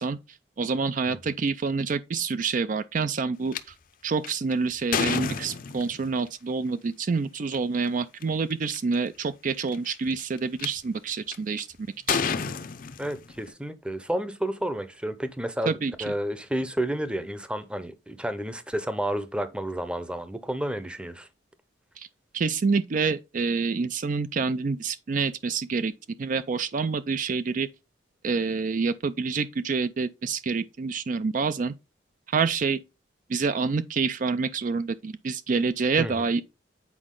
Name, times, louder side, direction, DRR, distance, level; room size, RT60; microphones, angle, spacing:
voice 1, 0.0-3.7 4.0-11.7 12.1-12.2 15.7-15.9 22.0-22.1 22.3-25.9 26.2-27.7 28.2-31.7 32.3-32.8 33.3-36.4, right 4 dB, 45° right, 0.4 m, -27 dB
sound 1, 3.5-3.6 4.2-6.1 7.4-7.6 8.2-8.3 8.5-9.0 9.7-10.7 11.3-11.6 12.1-13.5, left 6 dB, 50° left, 0.6 m, -29 dB
voice 2, 13.0-21.3 36.0-36.1, right 1 dB, 5° right, 0.7 m, -31 dB
8.3 x 4.8 x 3.7 m
head